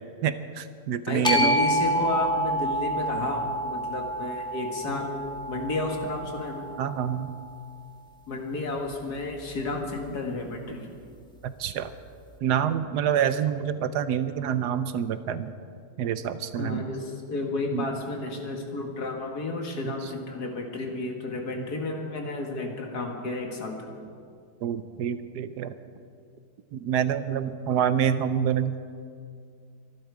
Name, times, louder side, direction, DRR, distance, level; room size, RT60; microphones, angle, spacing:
voice 1, 0.2-1.6 6.8-7.3 11.4-11.9 12.4-15.5 16.0-16.9 17.7-17.8 19.9-20.0 21.6-21.7 24.6-25.7 26.7-28.8, right 9 dB, 75° right, 12 dB, 1.2 m, -27 dB
voice 2, 1.1-6.6 8.3-10.8 16.6-23.9, left 2 dB, 65° left, 1 dB, 2.4 m, -32 dB
sound 1, 1.2-7.5, equal, 5° left, 1.4 m, -28 dB
24.0 x 12.0 x 4.8 m, 2.2 s
omnidirectional pair, 1.8 m